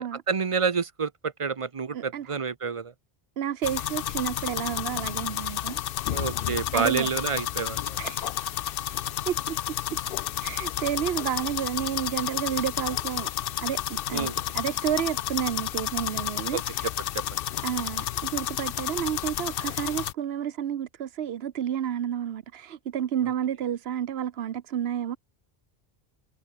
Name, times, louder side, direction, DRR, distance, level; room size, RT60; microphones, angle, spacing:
voice 1, 0.0-2.9 6.1-8.0 14.1-14.3 16.5-16.6 17.1-17.4, right 5 dB, 35° right, 0.7 m, -29 dB
voice 2, 1.9-2.3 3.4-6.2 6.7-7.1 8.0-8.6 9.3-9.6 9.9-10.0 10.4-13.3 13.6-14.3 14.5-16.9 17.6-25.2, right 10 dB, 75° right, 1.0 m, -31 dB
sound 1, 3.6-20.1, left 12 dB, 65° left, 0.7 m, -31 dB
omnidirectional pair, 1.0 m